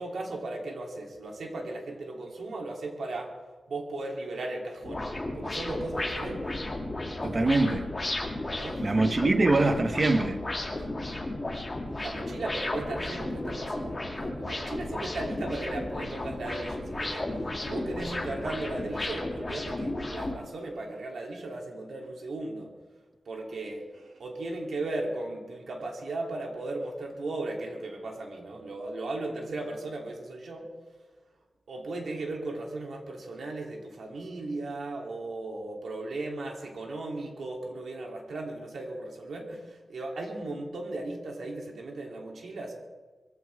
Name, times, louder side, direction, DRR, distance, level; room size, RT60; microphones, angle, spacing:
voice 1, 0.0-3.4 3.7-5.1 5.3-6.6 8.5-9.1 10.8-10.9 11.9-22.7 23.2-30.7 31.7-42.7, right 2 dB, 90° right, 0 dB, 3.2 m, -36 dB
sound 1, 4.8-20.3, left 2 dB, 25° left, 2.6 m, -34 dB
voice 2, 7.2-7.9 8.8-10.4, right 2 dB, 35° right, 7 dB, 1.0 m, -23 dB
23.0 x 15.5 x 3.6 m, 1.3 s
wide cardioid pair, 140°, 0 cm